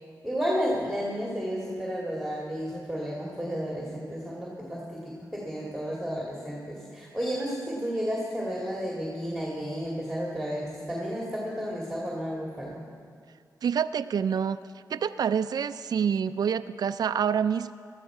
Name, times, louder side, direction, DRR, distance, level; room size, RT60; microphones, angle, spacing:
voice 1, 0.2-12.8, equal, ahead, -4 dB, 2.2 m, -32 dB
voice 2, 13.6-14.6 14.9-17.7, right 7 dB, 65° right, 12 dB, 0.3 m, -27 dB
17.0 x 12.0 x 4.8 m, 2.1 s
wide cardioid pair, 95°, 7 cm